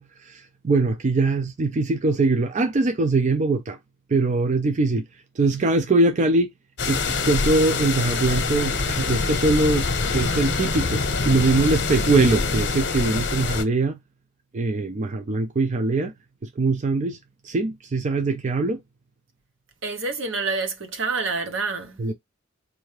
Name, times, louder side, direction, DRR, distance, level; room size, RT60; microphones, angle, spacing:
voice 1, 0.0-3.8 4.1-5.0 5.4-6.5 6.9-14.0 14.5-16.1 16.6-17.2 17.4-18.8 22.0-22.1, right 3 dB, 35° right, 0.4 m, -22 dB
sound 1, 6.8-13.6, left 4 dB, 60° left, 0.8 m, -25 dB
voice 2, 19.8-22.0, right 4 dB, 75° right, 1.0 m, -27 dB
4.3 x 2.7 x 3.2 m
head